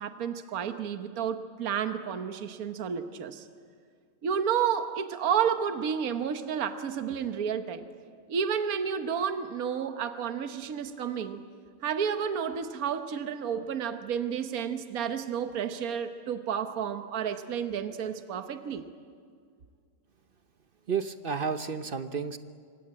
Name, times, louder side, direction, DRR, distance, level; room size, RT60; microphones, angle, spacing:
voice 1, 0.0-3.5 4.2-7.9 8.3-11.4 11.8-18.8, right 7 dB, 65° right, 8 dB, 1.5 m, -31 dB
voice 2, 20.9-22.4, right 6 dB, 40° right, 10 dB, 0.9 m, -31 dB
26.5 x 24.5 x 8.7 m, 2.1 s
omnidirectional pair, 1.7 m